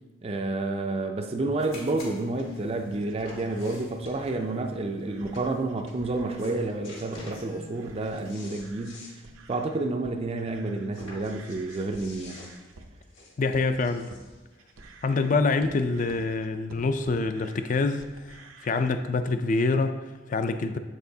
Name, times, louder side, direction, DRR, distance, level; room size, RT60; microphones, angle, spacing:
voice 1, 0.2-9.1 9.5-12.4, right 2 dB, 30° right, 0.4 m, -30 dB
sound 1, 1.6-8.3, left 2 dB, 85° left, 2.3 m, -49 dB
sound 2, 1.6-1.7 2.4-2.6 2.9-4.5 5.0-5.1 5.3-5.5 5.9-6.2 6.4-7.4 7.8-9.2 9.5-9.6 9.9-10.0 10.9-14.4 15.2-15.3, left 1 dB, 65° left, 1.6 m, -47 dB
sound 3, 2.9-6.7 7.1-7.5 7.7-18.9, right 2 dB, 80° right, 0.7 m, -50 dB
voice 2, 13.4-14.1 15.0-18.4 18.6-20.8, left 3 dB, 40° left, 0.4 m, -26 dB
7.7 x 6.6 x 2.7 m
head